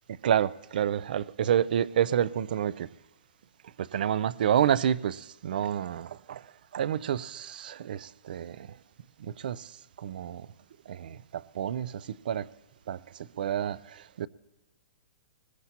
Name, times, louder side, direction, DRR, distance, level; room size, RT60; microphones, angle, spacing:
voice 1, 0.2-2.9 3.8-8.8 9.2-10.5 10.9-12.5 12.9-14.3, right 9 dB, 50° right, 0.4 m, -29 dB
21.0 x 19.0 x 2.9 m
hypercardioid pair, 180°, 6 cm